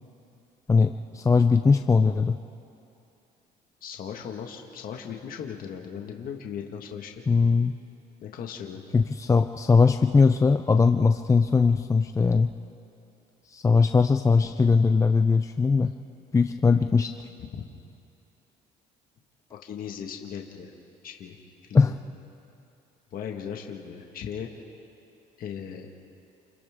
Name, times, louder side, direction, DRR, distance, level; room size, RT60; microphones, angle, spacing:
voice 1, 0.7-2.4 7.3-7.8 8.9-12.5 13.5-15.9 16.3-17.2 21.7-21.9, left 4 dB, 20° left, 8 dB, 0.5 m, -20 dB
voice 2, 3.8-7.1 8.2-8.8 17.4-17.7 19.5-20.7 21.0-21.4 21.7-21.9 23.1-24.5 25.4-25.9, left 8 dB, 60° left, 2 dB, 1.8 m, -37 dB
29.0 x 28.5 x 3.7 m, 2.7 s
cardioid pair, 110°, 17 cm